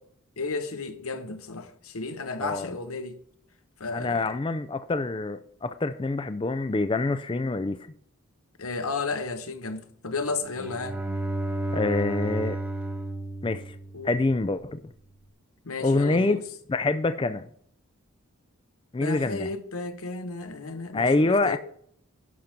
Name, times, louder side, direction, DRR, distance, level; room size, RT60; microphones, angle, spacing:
voice 1, 0.4-3.2 3.8-4.3 8.6-11.0 13.9-14.1 15.6-16.4 19.0-21.6, left 3 dB, 80° left, 1.1 m, -33 dB
voice 2, 2.4-2.7 3.9-7.8 11.7-12.6 13.4-13.8 14.0-14.8 15.8-16.4 16.7-17.5 18.9-19.5 20.9-21.6, left 2 dB, 25° left, 0.4 m, -26 dB
Bowed string instrument, 10.4-14.5, right 2 dB, 5° right, 1.0 m, -32 dB
11.0 x 5.9 x 5.1 m
head